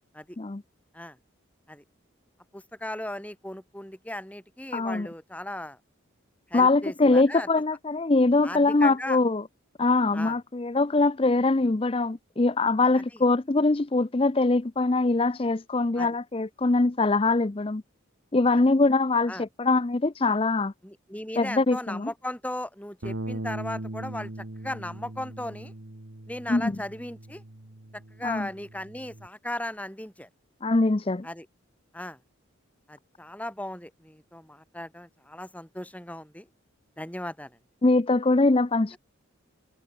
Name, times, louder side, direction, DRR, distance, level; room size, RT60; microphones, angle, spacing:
voice 1, 2.5-5.8 6.5-7.5 8.4-9.2 10.1-10.3 16.0-16.1 19.3-19.4 20.8-25.7 26.3-27.4 28.2-30.3 31.2-31.5 31.9-32.2 32.9-36.5 37.0-37.5, left 1 dB, 5° left, 3.5 m, -37 dB
voice 2, 4.7-5.1 6.5-9.4 9.8-17.8 18.3-20.7 21.4-22.1 26.5-26.7 28.2-28.5 30.6-31.3 37.8-39.0, left 3 dB, 25° left, 0.5 m, -23 dB
Bass guitar, 23.0-29.3, right 1 dB, 60° right, 1.6 m, -39 dB
head